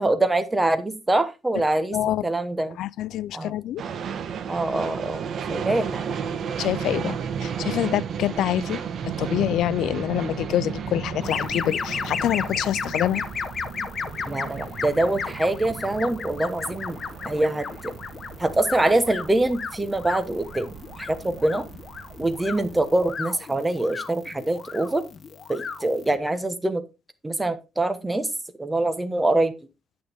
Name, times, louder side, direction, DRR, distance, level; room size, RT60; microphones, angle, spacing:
voice 1, 0.0-2.0 2.2-2.8 3.3-3.5 4.5-6.1 14.3-17.0 17.2-17.9 18.4-21.6 22.2-25.0 25.5-26.8 27.2-28.3 28.6-29.5, right 2 dB, 10° right, 1.1 m, -24 dB
voice 2, 1.9-2.3 2.8-3.8 6.6-8.8 9.0-13.2, left 12 dB, 75° left, 0.4 m, -26 dB
sound 1, 3.8-23.1, right 7 dB, 50° right, 1.1 m, -34 dB
sound 2, 11.2-26.1, left 5 dB, 35° left, 1.0 m, -34 dB
8.7 x 8.6 x 3.5 m
cardioid pair, 150°, 0 cm